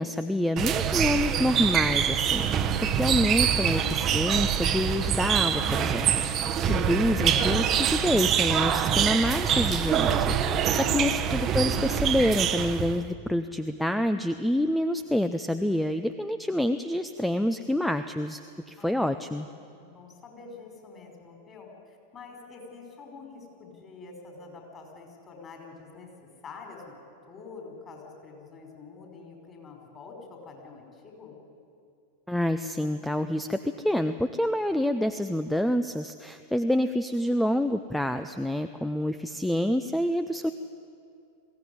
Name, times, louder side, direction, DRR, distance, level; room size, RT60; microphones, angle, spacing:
voice 1, 0.0-2.7 2.9-18.4 18.7-19.5 32.3-40.5, left 1 dB, 5° left, 10 dB, 0.6 m, -27 dB
sound 1, 0.6-13.0, right 8 dB, 30° right, 1.0 m, -25 dB
voice 2, 10.7-11.1 18.8-26.1 26.4-26.9 27.3-31.4, left 4 dB, 25° left, 2 dB, 4.9 m, -46 dB
21.5 x 16.0 x 9.7 m, 2.5 s
figure-of-eight pair, 90°, 0 cm